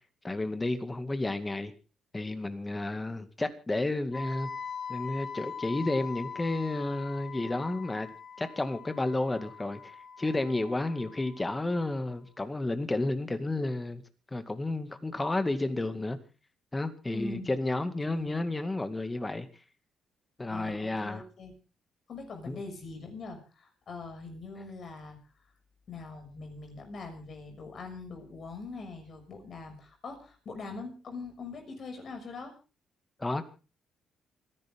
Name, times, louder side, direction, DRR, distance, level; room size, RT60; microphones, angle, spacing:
voice 1, 0.2-1.7 2.1-4.5 4.9-8.1 8.4-14.0 14.3-16.2 16.7-19.5 20.4-21.2 22.5-22.6 33.2-33.4, left 2 dB, 20° left, 2.2 m, -31 dB
Wind instrument woodwind instrument, 4.1-12.1, left 6 dB, 35° left, 3.2 m, -42 dB
voice 2, 17.1-17.5 18.1-18.5 20.5-21.5 22.1-25.2 25.9-32.5, left 3 dB, 55° left, 6.4 m, -42 dB
28.0 x 11.0 x 3.7 m
cardioid pair, 90°, 0 cm